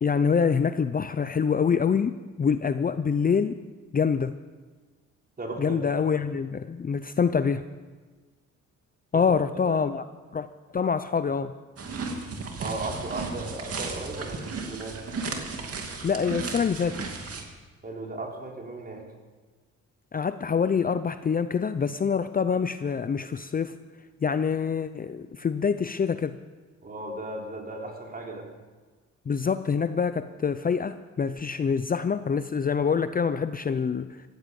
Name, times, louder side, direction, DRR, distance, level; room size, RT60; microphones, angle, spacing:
voice 1, 0.0-3.6 3.9-4.4 5.6-7.6 9.1-10.0 10.3-10.5 10.7-11.5 16.0-17.0 20.1-23.8 24.2-26.4 29.3-34.2, left 6 dB, 30° left, 11 dB, 0.6 m, -25 dB
voice 2, 5.4-6.0 9.1-9.4 9.6-9.8 12.6-15.1 17.8-19.1 26.8-28.5, right 2 dB, 30° right, 0 dB, 4.0 m, -36 dB
sound 1, 11.8-17.4, right 4 dB, 50° right, 2.6 m, -34 dB
17.5 x 15.0 x 5.4 m, 1.3 s
cardioid pair, 90°, 30 cm